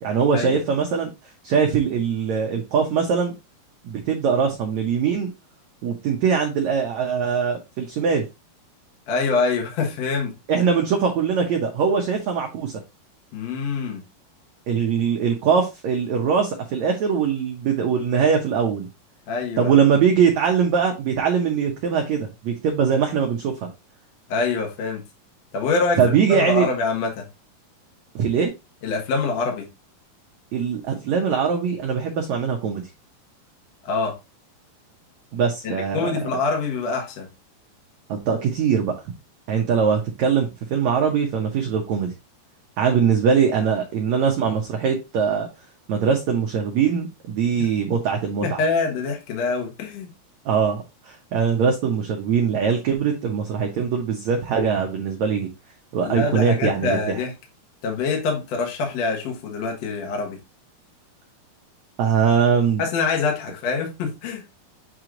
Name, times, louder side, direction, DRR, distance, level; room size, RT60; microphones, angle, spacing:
voice 1, 0.0-1.1 1.4-3.3 3.8-5.3 5.8-8.2 10.5-12.8 14.7-18.9 19.6-23.7 26.0-26.7 28.1-28.5 30.5-32.8 35.3-36.1 38.1-38.9 39.5-42.1 42.8-45.5 45.9-48.6 50.4-55.5 55.9-57.2 62.0-62.8, right 6 dB, 75° right, 1.7 m, -22 dB
voice 2, 9.1-10.4 13.3-14.0 19.3-19.7 24.3-25.0 25.5-26.0 26.3-27.3 28.8-29.7 33.8-34.2 35.6-37.3 48.4-50.1 56.0-57.3 57.8-60.4 62.8-64.4, left 4 dB, 55° left, 2.1 m, -25 dB
8.0 x 3.1 x 3.8 m
omnidirectional pair, 4.5 m